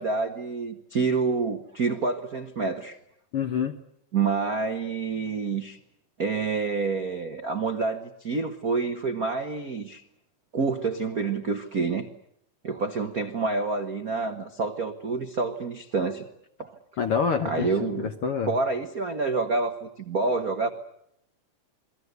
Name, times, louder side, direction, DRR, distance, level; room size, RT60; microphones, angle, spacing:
voice 1, 0.0-3.0 4.1-5.8 6.2-10.0 10.5-12.1 12.6-16.3 16.6-16.7 17.4-18.1 18.5-20.7, right 4 dB, 60° right, 7 dB, 0.9 m, -28 dB
voice 2, 3.3-3.8 17.0-18.5, left 6 dB, 60° left, 7 dB, 1.5 m, -27 dB
28.5 x 21.0 x 8.1 m, 0.75 s
omnidirectional pair, 3.8 m